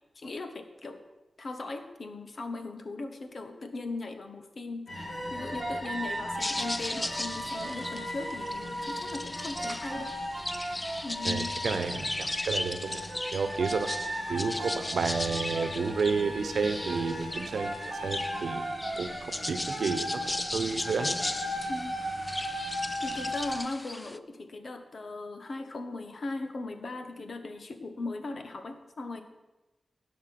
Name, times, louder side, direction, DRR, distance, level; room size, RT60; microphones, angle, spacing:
voice 1, 0.1-1.0 1.4-10.2 11.0-11.5 21.7-22.0 23.0-29.2, left 2 dB, 55° left, 6 dB, 1.3 m, -38 dB
sound 1, 4.9-23.6, left 1 dB, 35° left, 3.4 m, -38 dB
sound 2, 5.1-11.3 13.1-19.3, right 1 dB, 35° right, 1.6 m, -39 dB
sound 3, 6.4-24.2, left 1 dB, 20° left, 0.4 m, -37 dB
voice 2, 11.2-13.1 13.3-13.9 14.3-17.7 18.0-18.6 19.0-20.0 20.5-21.2, right 4 dB, 90° right, 9 dB, 1.0 m, -31 dB
17.0 x 5.9 x 6.0 m, 1.1 s
wide cardioid pair, 120°, 0 cm